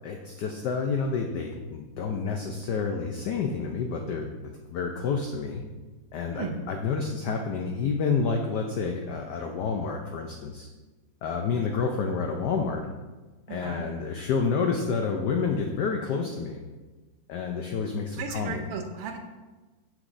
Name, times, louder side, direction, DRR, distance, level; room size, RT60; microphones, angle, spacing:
voice 1, 0.0-4.3 4.7-5.6 6.1-10.7 11.2-12.8 13.5-16.6 17.3-18.6, left 5 dB, 85° left, 3 dB, 0.9 m, -29 dB
voice 2, 13.5-13.8 18.2-19.2, right 5 dB, 85° right, 4 dB, 1.7 m, -35 dB
7.8 x 6.0 x 2.6 m, 1.2 s
omnidirectional pair, 2.4 m